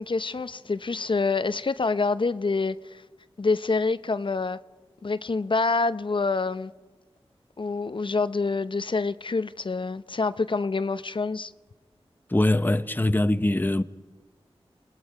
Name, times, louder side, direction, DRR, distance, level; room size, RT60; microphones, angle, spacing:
voice 1, 0.0-3.0 3.4-4.6 5.0-6.7 7.6-11.5, left 3 dB, 55° left, 0.6 m, -26 dB
voice 2, 12.3-13.8, left 1 dB, 20° left, 0.8 m, -22 dB
28.0 x 19.0 x 4.9 m
cardioid pair, 40°, 10 cm